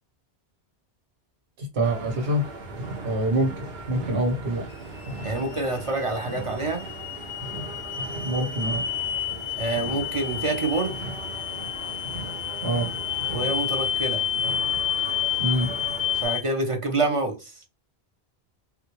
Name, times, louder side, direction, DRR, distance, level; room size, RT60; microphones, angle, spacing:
voice 1, 1.6-2.5 3.0-4.6 8.2-8.8 12.6-12.9 15.4-15.7, right 1 dB, 85° right, 1.3 m, -25 dB
sound 1, 1.8-16.2, right 2 dB, 70° right, 1.0 m, -38 dB
sound 2, 4.7-16.4, left 10 dB, 65° left, 0.7 m, -30 dB
voice 2, 5.2-6.8 9.6-10.9 13.3-14.2 16.2-17.5, right 3 dB, 35° right, 0.6 m, -27 dB
3.6 x 2.3 x 3.0 m
omnidirectional pair, 1.1 m